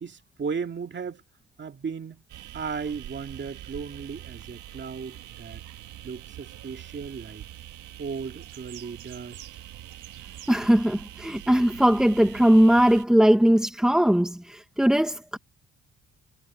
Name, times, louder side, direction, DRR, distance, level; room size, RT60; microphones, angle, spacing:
voice 1, 0.0-1.2 1.6-2.2 2.5-5.6 6.0-7.4 8.0-9.5, right 5 dB, 40° right, 2.0 m, -35 dB
sound 1, 2.3-13.0, right 13 dB, 80° right, 1.5 m, -44 dB
voice 2, 10.5-15.4, equal, ahead, 0.6 m, -20 dB
cardioid pair, 90°, 30 cm